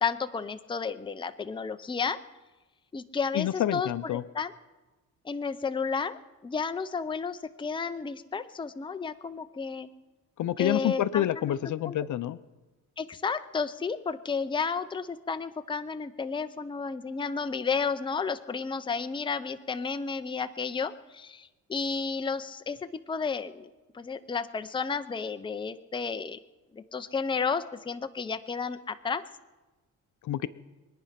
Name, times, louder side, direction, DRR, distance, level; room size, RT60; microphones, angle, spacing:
voice 1, 0.0-2.2 2.9-3.9 4.3-4.5 5.2-9.9 10.6-11.6 11.8-12.0 13.0-23.7 23.9-26.4 26.7-29.2, left 5 dB, 15° left, 9 dB, 0.6 m, -32 dB
voice 2, 3.3-4.2 10.4-12.4 30.2-30.5, left 12 dB, 60° left, 14 dB, 0.7 m, -28 dB
24.5 x 9.7 x 5.8 m, 1.2 s
cardioid pair, 115°, 33 cm